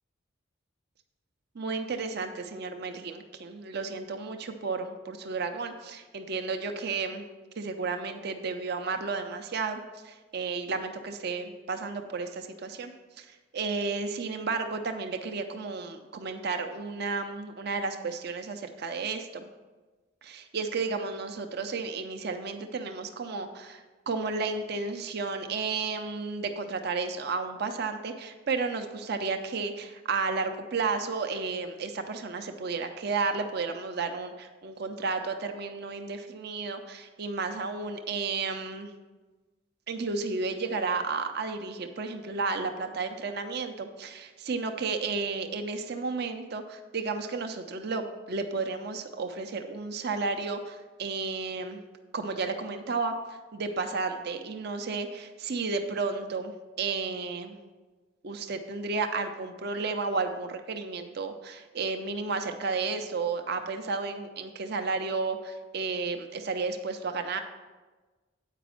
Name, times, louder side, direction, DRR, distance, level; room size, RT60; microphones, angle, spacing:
voice 1, 1.5-7.2 7.6-12.9 13.2-19.5 20.2-38.9 39.9-51.8 52.1-57.6 58.2-67.4, right 4 dB, 55° right, 6 dB, 0.6 m, -32 dB
8.3 x 5.0 x 6.2 m, 1.3 s
head